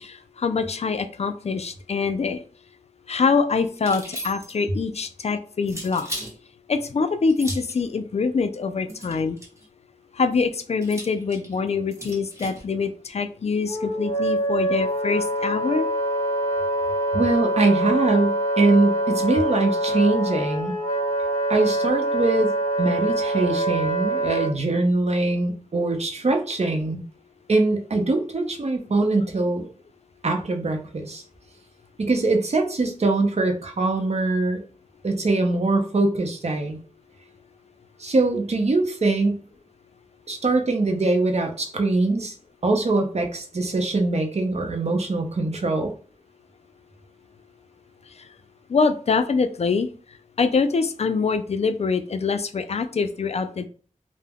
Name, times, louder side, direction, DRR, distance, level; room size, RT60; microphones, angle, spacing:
voice 1, 0.0-2.4 3.1-6.1 6.7-9.4 10.1-15.9 48.7-49.9 50.4-53.7, left 4 dB, 50° left, 0.4 m, -24 dB
sound 1, 3.8-4.7 5.7-6.3 7.3-7.8 8.9-9.6 10.8-12.6, equal, 20° right, 1.0 m, -37 dB
Wind instrument woodwind instrument, 13.7-24.5, right 1 dB, 25° left, 1.1 m, -25 dB
voice 2, 17.1-20.8 21.5-27.0 27.5-29.7 30.2-31.2 32.0-34.6 35.0-36.8 38.0-39.4 40.3-42.3 42.6-45.9, right 2 dB, 55° right, 0.6 m, -22 dB
2.2 x 2.0 x 3.4 m
cardioid pair, 40°, 14 cm